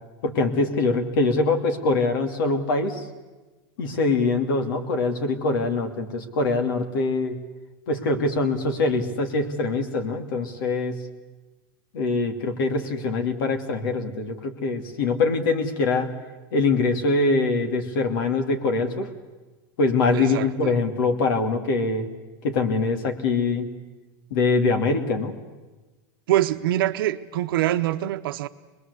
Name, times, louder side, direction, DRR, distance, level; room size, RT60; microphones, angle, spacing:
voice 1, 0.2-3.1 3.8-7.3 7.9-10.9 11.9-16.1 16.5-19.1 19.8-22.1 22.4-23.7 24.3-25.3, left 3 dB, 70° left, 6 dB, 2.7 m, -23 dB
voice 2, 20.1-20.7 26.3-28.5, right 14 dB, 75° right, 9 dB, 0.9 m, -24 dB
24.0 x 21.0 x 8.2 m, 1.2 s
supercardioid pair, 175°, 12 cm